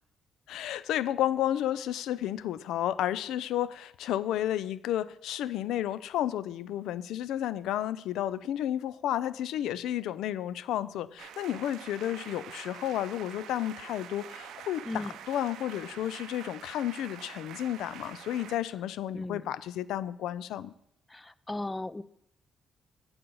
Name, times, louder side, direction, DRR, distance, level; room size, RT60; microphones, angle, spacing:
voice 1, 0.5-20.7, left 12 dB, 85° left, 17 dB, 0.4 m, -32 dB
sound 1, 11.2-18.6, right 9 dB, 80° right, 0.5 m, -46 dB
voice 2, 14.8-15.2 19.1-19.5 21.1-22.0, left 2 dB, 15° left, 17 dB, 0.4 m, -36 dB
8.5 x 4.0 x 7.0 m, 0.74 s
cardioid pair, 90°, 0 cm